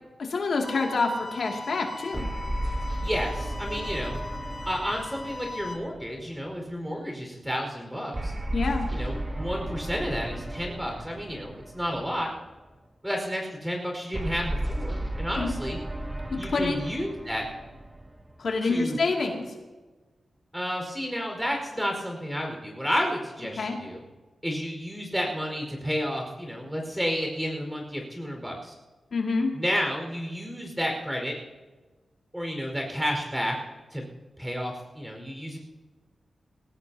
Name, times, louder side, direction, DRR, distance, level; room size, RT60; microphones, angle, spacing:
voice 1, 0.2-2.3 8.5-8.9 15.4-15.5 16.3-16.8 18.4-19.4 23.6-23.8 29.1-29.5, left 3 dB, 70° left, 0 dB, 2.5 m, -27 dB
sound 1, 0.6-5.7, left 3 dB, 45° left, 2.8 m, -39 dB
sound 2, 2.1-6.7 8.1-12.5 14.1-18.7, right 1 dB, 20° right, 1.0 m, -34 dB
voice 2, 3.0-4.2 4.6-8.3 8.9-12.3 13.0-15.8 16.4-17.4 18.6-19.0 20.5-24.0 24.4-28.7 29.5-31.4 32.3-33.6 33.9-34.0 34.4-35.6, equal, 5° right, 1 dB, 4.9 m, -31 dB
22.0 x 17.5 x 2.9 m, 1.3 s
wide cardioid pair, 110°, 0 cm